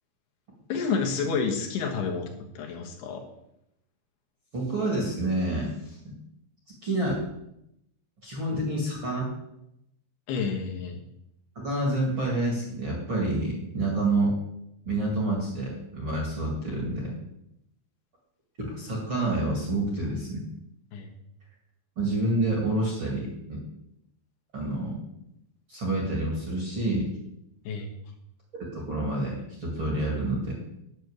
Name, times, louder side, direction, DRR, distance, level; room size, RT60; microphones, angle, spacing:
voice 1, 0.7-3.3 10.3-11.0 20.9-21.1 27.6-27.9, left 5 dB, 75° left, 1 dB, 3.2 m, -29 dB
voice 2, 4.5-6.1 6.8-7.2 8.2-9.3 11.6-14.4 14.9-17.1 18.6-20.4 22.0-23.6 24.5-25.0 25.7-27.1 28.7-30.5, right 2 dB, 35° right, -2 dB, 2.2 m, -28 dB
9.4 x 6.5 x 8.0 m, 0.80 s
omnidirectional pair, 5.0 m